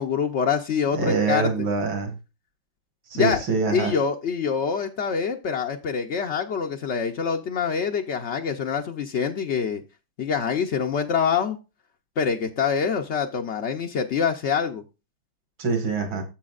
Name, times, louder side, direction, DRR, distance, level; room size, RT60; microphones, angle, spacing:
voice 1, 0.0-1.7 3.1-3.4 3.7-9.8 10.2-11.6 12.2-14.8, left 6 dB, 75° left, 3 dB, 0.6 m, -25 dB
voice 2, 0.9-2.1 3.1-3.9 15.6-16.2, right 4 dB, 75° right, 5 dB, 2.6 m, -24 dB
11.5 x 7.7 x 2.4 m, 0.28 s
omnidirectional pair, 2.1 m